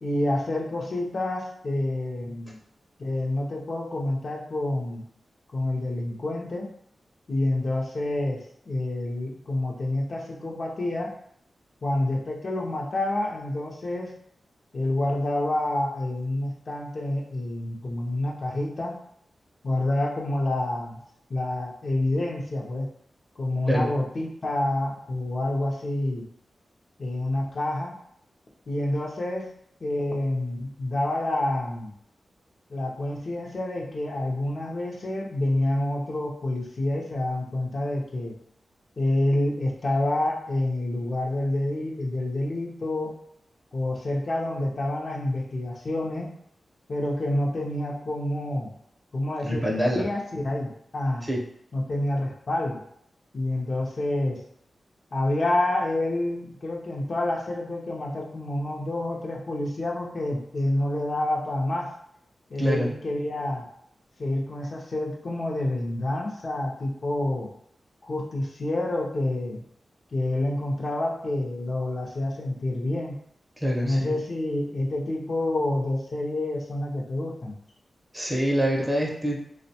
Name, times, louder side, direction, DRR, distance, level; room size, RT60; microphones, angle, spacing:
voice 1, 0.0-2.6 3.0-5.0 5.5-6.7 7.3-11.1 11.8-14.1 14.7-19.0 19.6-21.0 21.3-22.9 23.4-26.3 27.0-28.0 28.7-29.5 29.8-31.9 32.7-38.3 39.0-43.1 43.7-46.4 46.9-48.7 49.1-51.3 51.7-52.8 53.3-54.4 55.1-61.9 62.5-63.7 64.2-67.5 68.0-69.6 70.1-73.2 73.8-77.6, left 1 dB, 55° left, -1 dB, 0.5 m, -28 dB
voice 2, 49.4-50.1 51.2-51.4 62.6-62.9 73.6-74.1 78.1-79.4, equal, 10° right, -1 dB, 0.6 m, -25 dB
2.5 x 2.0 x 2.7 m, 0.69 s
cardioid pair, 65°, 0 cm